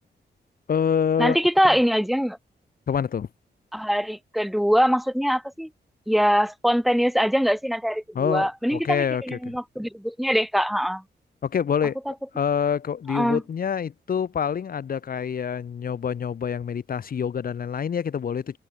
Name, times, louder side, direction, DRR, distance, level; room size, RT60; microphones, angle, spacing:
voice 1, 0.7-1.4 2.9-3.3 8.1-9.5 11.4-12.0 12.3-18.6, left 7 dB, 55° left, 0.9 m, -26 dB
voice 2, 1.2-2.4 3.7-5.7 6.1-11.0 13.1-13.4, equal, ahead, 1.2 m, -23 dB
wide cardioid pair, 165°, 18 cm